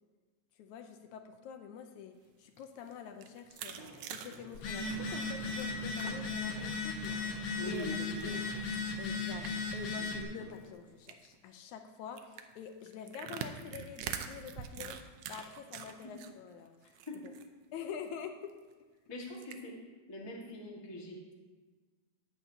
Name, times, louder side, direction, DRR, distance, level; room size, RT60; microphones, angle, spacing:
voice 1, 0.6-7.1 7.6-8.5 9.0-16.9 17.2-17.3 17.7-18.6, left 7 dB, 80° left, 5 dB, 2.0 m, -46 dB
sound 1, 2.5-6.4 6.7-7.3 7.7-9.8 10.2-10.3 10.5-10.7 11.0-11.3 12.2-16.3 16.7-17.5 17.8-17.9 18.2-18.3 19.3-19.5, right 8 dB, 85° right, 1.4 m, -44 dB
Walk footsteps, 3.5-10.7, right 1 dB, 55° right, 0.4 m, -53 dB
Telephone, 4.5-10.2, left 3 dB, 55° left, 1.7 m, -36 dB
voice 2, 7.6-8.4 15.4-15.5 16.0-16.1 17.1-17.2 19.1-19.8 20.1-21.3, left 1 dB, 20° left, -3 dB, 0.7 m, -43 dB
14.0 x 9.6 x 2.8 m, 1.4 s
omnidirectional pair, 3.6 m